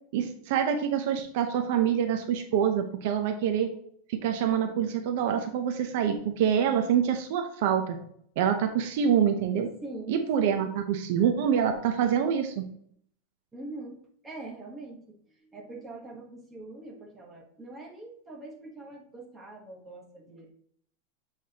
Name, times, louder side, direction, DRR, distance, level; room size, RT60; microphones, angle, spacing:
voice 1, 0.1-3.7 4.1-8.0 8.4-9.7 10.1-12.6, right 8 dB, 55° right, 6 dB, 0.7 m, -26 dB
voice 2, 9.8-10.6 13.5-14.0 14.2-20.5, right 2 dB, 10° right, -1 dB, 1.2 m, -43 dB
7.4 x 4.5 x 2.9 m, 0.64 s
supercardioid pair, 165°, 0 cm